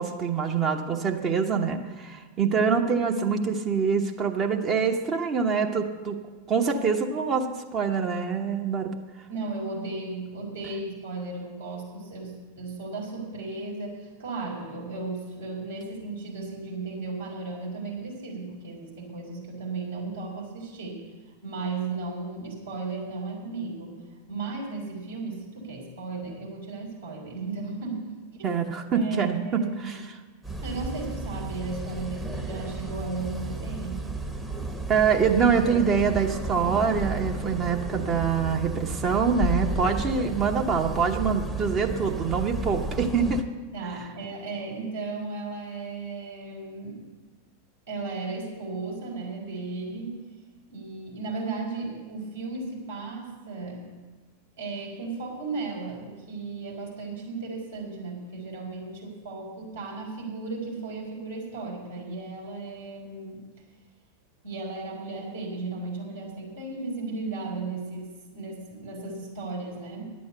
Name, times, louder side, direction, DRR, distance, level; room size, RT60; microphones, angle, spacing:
voice 1, 0.0-6.2 6.5-9.0 28.4-30.0 34.9-43.4, right 6 dB, 30° right, 2 dB, 1.1 m, -25 dB
voice 2, 9.3-21.0 21.4-23.9 24.3-28.1 28.4-28.6 28.9-30.0 30.6-34.0 43.7-47.0 47.9-50.2 50.7-53.8 54.6-63.4 64.4-70.1, right 3 dB, 70° right, -4 dB, 4.7 m, -35 dB
sound 1, 30.4-43.4, right 2 dB, 5° right, 1.0 m, -33 dB
11.5 x 8.5 x 8.0 m, 1.3 s
figure-of-eight pair, 90°, 0 cm